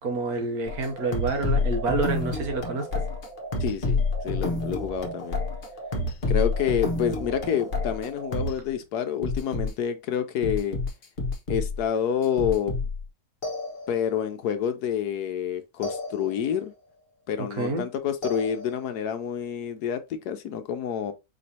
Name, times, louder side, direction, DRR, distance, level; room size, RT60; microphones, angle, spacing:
voice 1, 0.0-2.9 17.4-17.9, right 3 dB, 65° right, 1.4 m, -28 dB
sound 1, 0.7-8.6 9.2-9.7 10.4-11.8 12.2-13.0 13.4-14.2 15.8-16.6 18.2-19.0, left 3 dB, 40° left, 1.0 m, -29 dB
voice 2, 3.6-5.4 6.3-10.8 11.5-12.7 13.9-16.7 17.3-20.0 20.3-21.1, left 8 dB, 75° left, 1.1 m, -28 dB
5.1 x 3.1 x 2.7 m
omnidirectional pair, 1.8 m